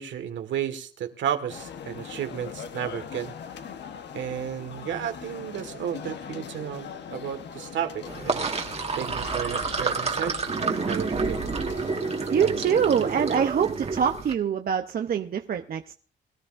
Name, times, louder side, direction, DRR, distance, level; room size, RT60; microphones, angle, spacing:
voice 1, 0.0-3.3 4.1-8.5 9.0-10.4 10.8-11.4, right 9 dB, 70° right, 1.7 m, -32 dB
sound 1, 1.5-13.3, left 7 dB, 60° left, 1.1 m, -41 dB
Sink (filling or washing), 8.1-14.3, right 4 dB, 30° right, 1.7 m, -29 dB
voice 2, 12.3-15.9, right 8 dB, 50° right, 0.7 m, -24 dB
22.0 x 12.5 x 2.6 m
cardioid pair, 90°, 20 cm